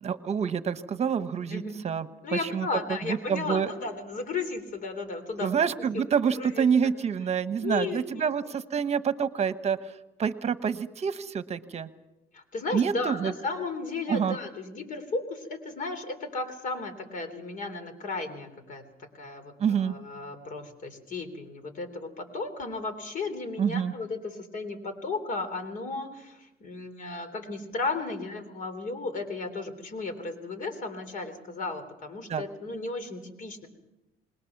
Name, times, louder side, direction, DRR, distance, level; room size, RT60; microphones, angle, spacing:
voice 1, 0.0-2.7 3.1-3.7 5.4-9.8 10.2-11.9 12.7-13.3 14.1-14.4 19.6-19.9 23.6-23.9 32.3-32.4, right 7 dB, 40° right, 11 dB, 1.1 m, -27 dB
voice 2, 1.5-1.8 2.2-5.5 5.8-6.9 7.6-8.5 12.3-18.9 19.1-33.7, left 3 dB, 50° left, 10 dB, 3.5 m, -35 dB
26.5 x 20.5 x 6.0 m, 0.96 s
cardioid pair, 110°, 17 cm